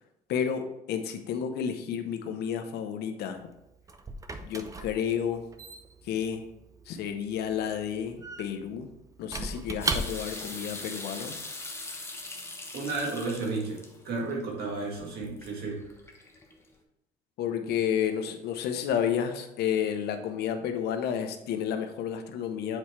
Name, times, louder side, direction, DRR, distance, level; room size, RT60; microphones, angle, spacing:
voice 1, 0.3-3.4 4.4-5.4 6.0-6.4 6.9-8.9 9.2-11.4 17.4-22.8, left 8 dB, 75° left, 7 dB, 0.8 m, -31 dB
Squeak / Wood, 3.4-10.5, right 3 dB, 20° right, 0.6 m, -37 dB
sound 1, 9.8-16.7, left 2 dB, 15° left, 1.0 m, -42 dB
voice 2, 12.7-15.9, right 3 dB, 65° right, -1 dB, 1.9 m, -33 dB
7.8 x 4.3 x 3.2 m, 0.88 s
cardioid pair, 110°, 17 cm